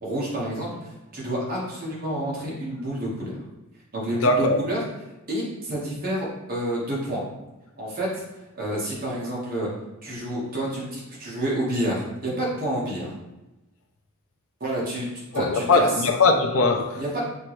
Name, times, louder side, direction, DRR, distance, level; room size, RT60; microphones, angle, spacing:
voice 1, 0.0-3.4 3.9-4.8 5.3-7.2 7.8-8.2 8.5-9.7 10.0-13.1 14.6-15.1 15.3-15.9 17.0-17.2, right 1 dB, 40° right, -5 dB, 1.2 m, -29 dB
voice 2, 4.2-4.6 15.3-17.2, left 3 dB, 70° left, 4 dB, 0.5 m, -21 dB
4.4 x 3.0 x 3.0 m, 1.0 s
head